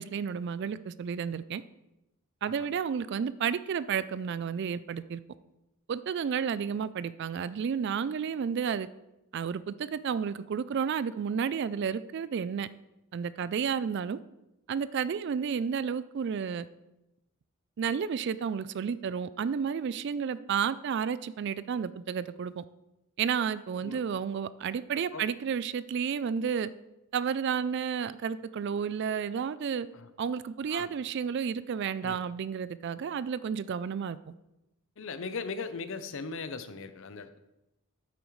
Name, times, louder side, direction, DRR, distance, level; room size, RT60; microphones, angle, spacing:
voice 1, 0.0-1.6 2.4-5.2 5.9-8.9 9.3-12.7 13.1-14.2 14.7-16.7 17.8-22.6 23.2-26.7 27.1-29.9 30.2-34.3, right 7 dB, 50° right, 16 dB, 0.3 m, -31 dB
voice 2, 35.0-37.4, left 4 dB, 60° left, 11 dB, 0.6 m, -38 dB
9.2 x 8.4 x 3.1 m, 0.91 s
head